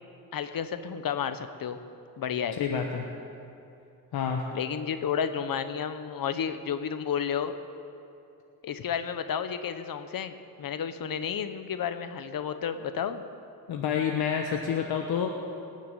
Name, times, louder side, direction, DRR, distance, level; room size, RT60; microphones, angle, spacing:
voice 1, 0.3-1.8 2.2-2.6 4.5-7.5 8.6-13.2, left 8 dB, 65° left, 10 dB, 1.0 m, -31 dB
voice 2, 2.6-3.1 4.1-4.4 13.7-15.3, left 7 dB, 85° left, 2 dB, 1.1 m, -28 dB
19.0 x 7.3 x 9.0 m, 2.7 s
cardioid pair, 75°, 37 cm